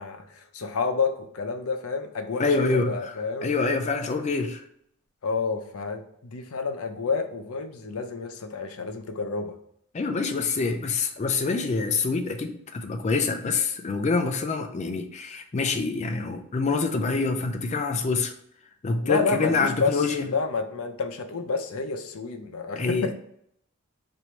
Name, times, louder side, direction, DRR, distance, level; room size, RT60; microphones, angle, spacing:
voice 1, 0.0-3.5 5.2-9.5 19.0-23.1, left 4 dB, 85° left, 6 dB, 0.6 m, -29 dB
voice 2, 2.4-3.1 3.4-4.6 9.9-18.3 18.8-20.3 22.8-23.1, left 4 dB, 30° left, 5 dB, 0.4 m, -26 dB
3.0 x 2.6 x 4.3 m, 0.69 s
head